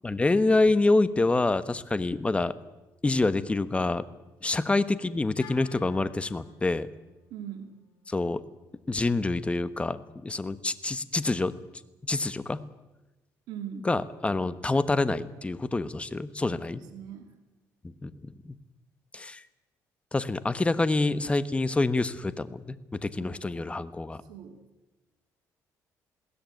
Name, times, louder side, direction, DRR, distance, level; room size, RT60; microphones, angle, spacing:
voice 1, 0.0-2.5 3.0-4.1 4.4-6.9 8.1-8.4 8.9-11.5 12.1-12.6 13.8-16.8 18.0-18.5 19.1-19.4 20.1-22.8 23.0-24.2, left 2 dB, 15° left, 14 dB, 1.2 m, -26 dB
Wind instrument woodwind instrument, 5.4-9.6, left 7 dB, 70° left, 3.5 m, -55 dB
voice 2, 7.3-7.8 13.5-13.9 16.6-17.3 23.2-23.4 24.3-24.6, right 9 dB, 85° right, 5 dB, 2.6 m, -41 dB
21.0 x 17.0 x 9.3 m, 1.1 s
cardioid pair, 100°, 7 cm